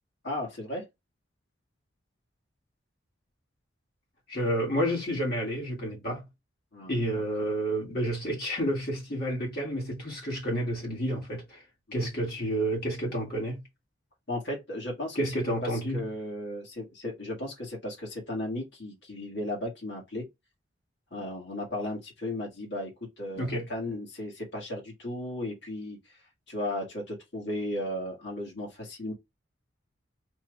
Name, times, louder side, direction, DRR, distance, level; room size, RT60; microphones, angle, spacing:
voice 1, 0.2-0.9 6.7-6.9 7.4-7.5 12.0-12.1 14.3-15.3 15.6-20.2 21.1-26.2 26.5-29.1, left 1 dB, 65° left, 1.8 m, -35 dB
voice 2, 4.3-6.2 6.9-11.6 11.9-13.6 15.2-16.0 23.4-23.7, equal, 50° left, 1.7 m, -30 dB
4.4 x 2.5 x 3.1 m
head